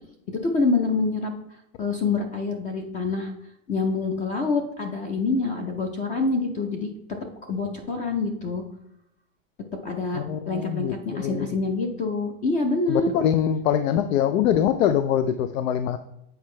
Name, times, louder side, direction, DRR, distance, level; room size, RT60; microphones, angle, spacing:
voice 1, 0.3-1.3 1.8-3.3 3.7-6.9 7.5-8.6 9.8-10.2 10.5-13.1, left 3 dB, 20° left, 0.4 m, -26 dB
voice 2, 10.1-11.6 12.9-16.0, left 9 dB, 80° left, 0.6 m, -23 dB
7.9 x 4.5 x 3.2 m
supercardioid pair, 150°, 39 cm